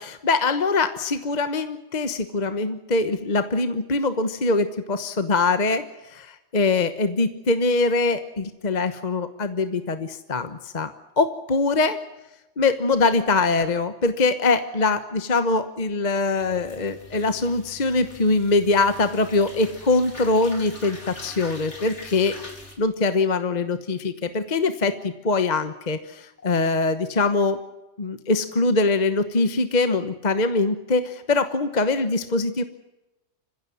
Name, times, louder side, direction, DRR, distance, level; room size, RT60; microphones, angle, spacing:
voice 1, 0.0-10.9 11.2-12.0 12.6-22.4 22.8-27.6 28.0-32.6, left 3 dB, 40° left, 10 dB, 1.2 m, -23 dB
sound 1, 16.4-22.7, left 1 dB, 70° left, 4.5 m, -43 dB
25.5 x 16.0 x 9.3 m, 0.99 s
omnidirectional pair, 1.2 m